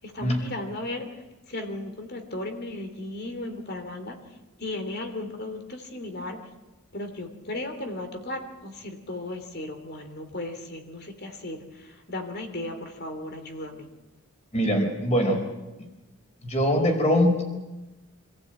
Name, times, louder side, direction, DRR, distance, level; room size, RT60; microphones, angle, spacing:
voice 1, 0.0-1.1 1.5-4.2 4.6-6.4 6.9-13.9, left 1 dB, 45° left, 6 dB, 3.0 m, -35 dB
voice 2, 14.5-15.5 16.4-17.4, equal, 30° left, 3 dB, 4.8 m, -22 dB
26.0 x 15.0 x 8.9 m, 1.1 s
head